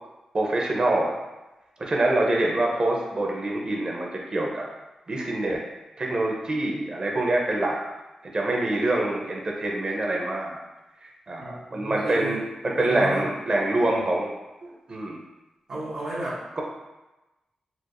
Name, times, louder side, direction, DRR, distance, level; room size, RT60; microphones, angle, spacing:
voice 1, 0.3-1.2 1.8-4.6 5.1-5.6 6.0-7.8 8.3-10.5 11.3-12.4 12.6-14.3 14.6-15.2 16.6-16.7, right 2 dB, 50° right, -1 dB, 0.8 m, -25 dB
voice 2, 11.4-12.4 12.7-13.3 15.7-16.4, right 1 dB, 75° right, -9 dB, 0.8 m, -33 dB
4.4 x 2.2 x 2.6 m, 1.1 s
cardioid pair, 55°, 2 cm